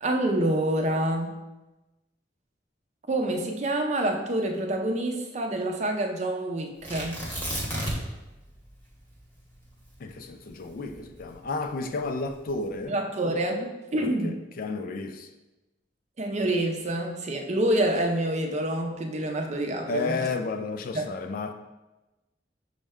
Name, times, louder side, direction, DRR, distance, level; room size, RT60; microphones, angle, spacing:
voice 1, 0.0-1.4 3.1-7.2 12.9-14.4 16.2-20.2 20.9-21.1, right 1 dB, 40° right, 3 dB, 0.5 m, -27 dB
Tearing, 6.8-8.2 8.5-8.6 9.2-11.5 12.2-12.7, equal, 10° left, 0.9 m, -33 dB
voice 2, 10.0-13.0 14.0-15.3 19.9-21.5, left 3 dB, 50° left, 7 dB, 0.3 m, -32 dB
6.1 x 2.1 x 3.5 m, 1.0 s
head